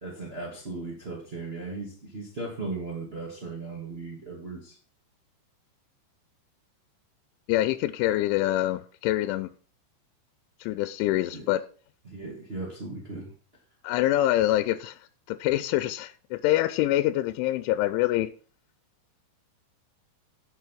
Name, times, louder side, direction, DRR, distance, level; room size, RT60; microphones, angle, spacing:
voice 1, 0.0-4.8 11.3-11.4 12.0-13.3, right 3 dB, 45° right, 0.7 m, -37 dB
voice 2, 7.5-9.5 10.6-11.6 13.8-15.0 15.3-18.3, left 14 dB, 90° left, 3.1 m, -25 dB
10.5 x 6.3 x 5.8 m
omnidirectional pair, 5.4 m